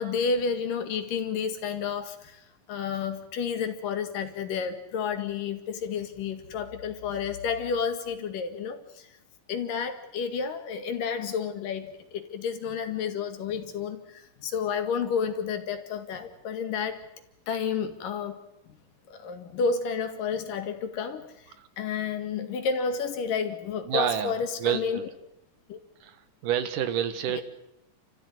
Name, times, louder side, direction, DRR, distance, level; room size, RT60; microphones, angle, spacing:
voice 1, 0.0-9.1 9.5-17.0 17.5-18.4 19.1-21.5 21.8-25.0 25.7-25.8 27.3-27.4, left 6 dB, 85° left, 7 dB, 3.7 m, -31 dB
voice 2, 23.8-25.1 26.0-27.4, right 9 dB, 75° right, 11 dB, 3.0 m, -29 dB
29.5 x 14.5 x 9.7 m, 0.86 s
omnidirectional pair, 3.7 m